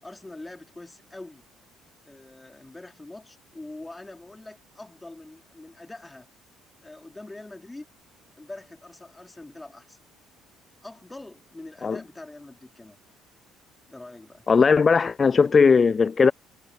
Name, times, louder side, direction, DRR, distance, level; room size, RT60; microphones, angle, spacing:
voice 1, 0.0-1.5 2.0-6.3 6.8-7.8 8.3-10.0 10.8-13.0 13.9-14.5, left 2 dB, 15° left, 4.6 m, -43 dB
voice 2, 14.5-16.3, left 5 dB, 35° left, 0.4 m, -18 dB
hypercardioid pair, 55°, 0 cm